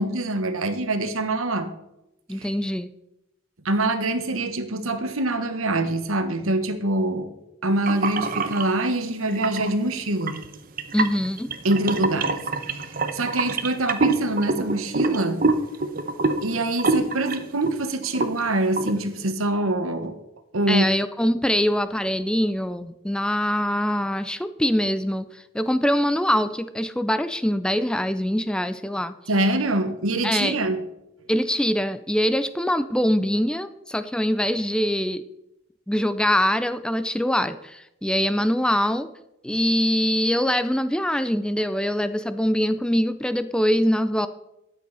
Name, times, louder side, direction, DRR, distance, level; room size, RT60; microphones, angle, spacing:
voice 1, 0.0-1.7 2.4-2.5 3.6-7.3 7.6-10.4 11.6-15.4 16.4-20.2 20.5-20.9 29.3-30.8, right 2 dB, 85° right, 9 dB, 1.3 m, -25 dB
voice 2, 2.3-2.9 10.9-11.5 20.7-29.1 30.2-30.6 31.3-35.2 35.9-39.1 39.4-44.3, equal, 5° left, 12 dB, 0.4 m, -23 dB
sound 1, 7.9-8.7 9.3-9.7 10.2-17.7 18.0-18.4 18.8-19.0, right 3 dB, 45° right, 0.9 m, -25 dB
13.0 x 9.2 x 4.1 m, 0.89 s
head